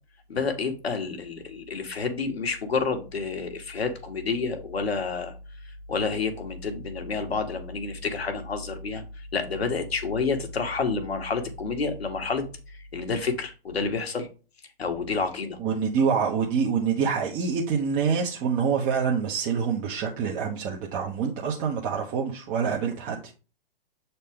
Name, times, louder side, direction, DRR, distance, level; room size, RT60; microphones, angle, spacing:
voice 1, 0.3-5.3 5.6-14.3 14.8-15.6, left 4 dB, 85° left, 1.6 m, -29 dB
voice 2, 15.6-23.3, right 6 dB, 25° right, 1.0 m, -26 dB
7.4 x 4.2 x 3.6 m
hypercardioid pair, 130°, 30 cm